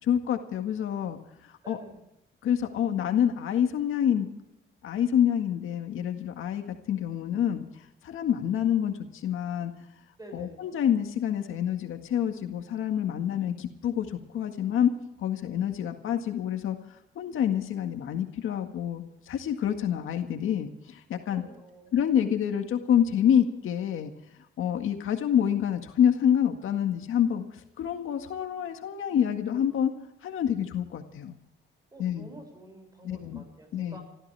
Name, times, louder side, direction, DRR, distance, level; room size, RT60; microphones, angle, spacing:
voice 1, 0.0-1.2 1.4-1.8 2.4-4.3 4.8-7.6 8.0-9.7 10.3-14.9 15.2-16.8 17.2-21.4 21.9-24.1 24.6-27.4 27.8-29.9 30.2-31.4 32.0-32.3 33.0-33.4 33.7-34.0, left 9 dB, 75° left, 5 dB, 1.9 m, -27 dB
voice 2, 1.6-2.0 10.2-10.6 21.3-21.9 31.9-34.0, right 1 dB, 15° right, 4 dB, 6.7 m, -47 dB
28.5 x 14.0 x 3.5 m, 0.86 s
cardioid pair, 130°, 21 cm